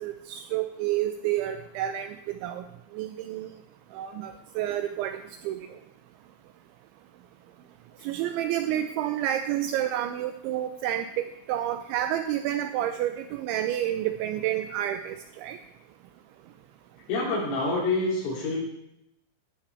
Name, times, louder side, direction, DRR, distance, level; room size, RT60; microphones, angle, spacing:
voice 1, 0.0-2.6 2.9-3.5 3.9-5.6 8.0-15.6, right 12 dB, 85° right, 8 dB, 2.7 m, -29 dB
voice 2, 17.1-18.6, left 2 dB, 75° left, -5 dB, 5.3 m, -27 dB
18.0 x 12.0 x 4.4 m, 0.81 s
omnidirectional pair, 6.0 m